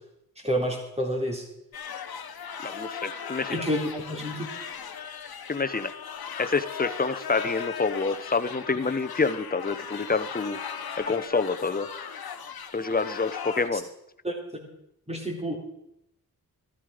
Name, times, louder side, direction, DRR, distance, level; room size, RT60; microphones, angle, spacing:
voice 1, 0.4-1.4 3.5-4.5 13.7-13.8 14.2-14.4 15.1-15.6, equal, 15° right, 1 dB, 3.7 m, -29 dB
sound 1, 1.7-13.7, left 7 dB, 75° left, 1.2 m, -38 dB
voice 2, 2.6-3.6 5.5-5.9 6.4-10.6 11.0-11.9 12.7-13.9, left 4 dB, 25° left, 11 dB, 0.9 m, -27 dB
13.5 x 13.0 x 5.1 m, 0.81 s
cardioid pair, 75°, 37 cm